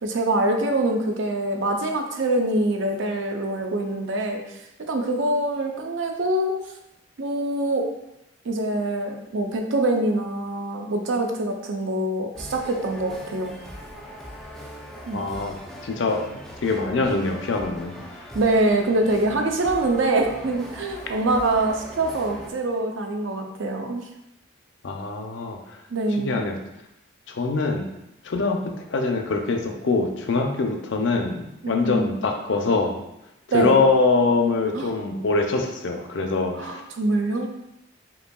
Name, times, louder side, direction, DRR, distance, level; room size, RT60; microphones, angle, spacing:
voice 1, 0.0-4.4 4.9-6.6 7.2-7.9 8.4-13.6 15.1-15.3 18.3-24.1 25.9-26.4 31.6-32.2 33.5-33.8 34.7-34.9 36.5-37.5, right 2 dB, 65° right, 3 dB, 0.5 m, -24 dB
sound 1, 12.3-22.5, equal, ahead, 0.3 m, -40 dB
voice 2, 15.1-15.5 15.8-17.9 24.8-25.8 26.2-26.6 27.3-27.9 28.2-33.0 33.5-36.8, left 3 dB, 60° left, 3 dB, 0.5 m, -24 dB
5.2 x 2.7 x 2.3 m, 0.86 s
head